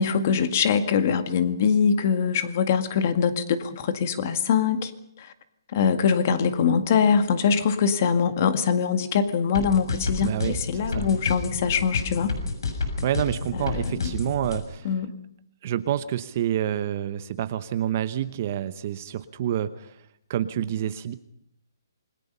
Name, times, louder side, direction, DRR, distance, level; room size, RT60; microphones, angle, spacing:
voice 1, 0.0-4.9 5.2-5.3 5.7-12.3 13.6-14.1 14.8-15.1, left 6 dB, 35° left, 10 dB, 1.9 m, -23 dB
sound 1, 9.6-14.6, left 4 dB, 70° left, 6.8 m, -29 dB
voice 2, 10.2-11.1 13.0-14.9 15.6-19.9 20.3-21.2, right 10 dB, 30° right, 13 dB, 1.0 m, -28 dB
28.5 x 22.0 x 5.6 m, 0.74 s
hypercardioid pair, 170°, 2 cm